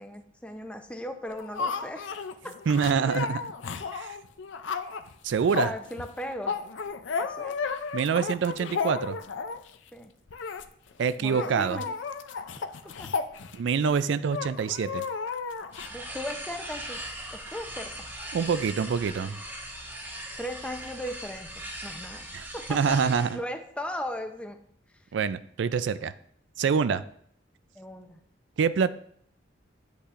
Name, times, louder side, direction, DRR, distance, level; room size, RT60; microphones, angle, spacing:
voice 1, 0.0-2.1 2.4-2.5 5.6-6.6 7.2-7.6 9.9-10.1 11.2-11.8 13.0-13.1 15.9-17.0 17.3-18.1 20.4-22.3 22.5-23.0 23.3-24.6 26.9-27.0 27.7-28.2, equal, 5° left, 5 dB, 0.6 m, -37 dB
sound 1, 1.3-9.7 10.3-10.6 10.9-11.0 11.2-13.9 14.3-15.9, left 5 dB, 75° left, 0.5 m, -33 dB
voice 2, 2.7-3.4 3.9-4.2 5.2-5.7 7.9-9.2 11.0-11.8 13.5-15.0 18.3-19.4 22.3-23.4 25.1-26.1 26.6-27.0 28.6-28.9, right 6 dB, 65° right, 14 dB, 0.4 m, -26 dB
sound 2, 15.7-23.4, right 1 dB, 10° right, 1.3 m, -40 dB
8.3 x 8.1 x 2.5 m, 0.64 s
head